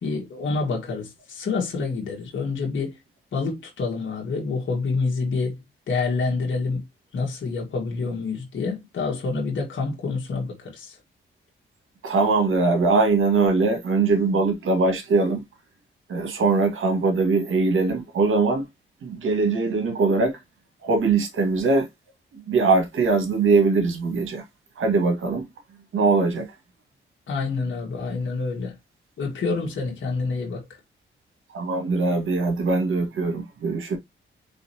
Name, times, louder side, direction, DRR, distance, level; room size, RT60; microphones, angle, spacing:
voice 1, 0.0-3.0 3.3-6.8 7.1-11.0 27.3-28.7 29.2-30.8, left 4 dB, 65° left, 1.8 m, -27 dB
voice 2, 12.0-15.4 16.1-18.7 19.0-20.4 20.8-21.9 22.3-24.4 24.8-25.5 25.9-26.5 31.5-34.0, right 3 dB, 70° right, 1.9 m, -21 dB
4.4 x 3.8 x 2.9 m
cardioid pair, 60°, 21 cm